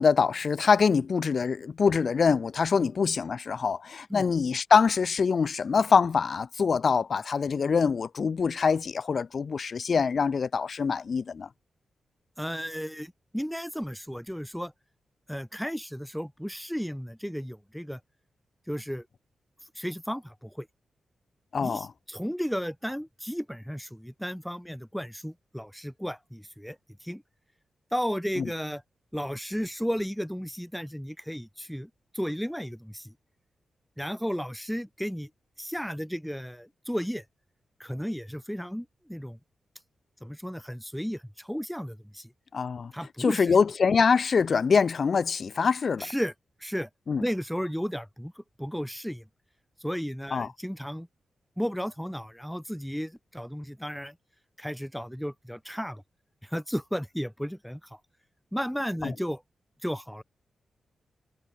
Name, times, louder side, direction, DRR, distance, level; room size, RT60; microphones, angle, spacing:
voice 1, 0.0-11.5 21.5-21.9 28.4-28.5 42.5-42.9 43.2-46.1 47.1-47.2 50.3-50.5 59.0-59.1, left 5 dB, 60° left, 0.9 m, -24 dB
voice 2, 12.4-14.7 15.3-18.0 18.7-19.1 19.8-20.7 21.6-27.2 27.9-28.8 29.1-33.1 34.0-35.3 35.6-37.2 37.8-39.4 40.2-42.3 42.9-43.5 46.0-46.3 46.6-46.9 47.2-49.2 49.8-51.1 51.6-54.2 54.6-56.0 56.4-58.0 58.5-59.4 59.8-60.2, equal, ahead, 0.8 m, -34 dB
cardioid pair, 50°, 0 cm